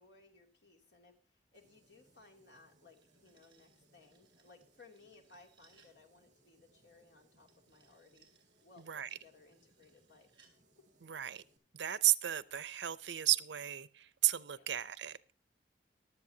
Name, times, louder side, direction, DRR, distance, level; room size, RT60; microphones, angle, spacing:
voice 1, 0.0-8.3 8.6-10.3 14.5-14.7, left 3 dB, 75° left, 2.7 m, -62 dB
sound 1, 1.5-11.6, right 1 dB, 45° right, 2.2 m, -71 dB
sound 2, 2.7-6.0 7.5-10.6, right 6 dB, 30° right, 3.8 m, -71 dB
voice 2, 11.0-11.4 11.7-15.2, right 14 dB, 85° right, 0.6 m, -33 dB
23.0 x 7.8 x 2.8 m
head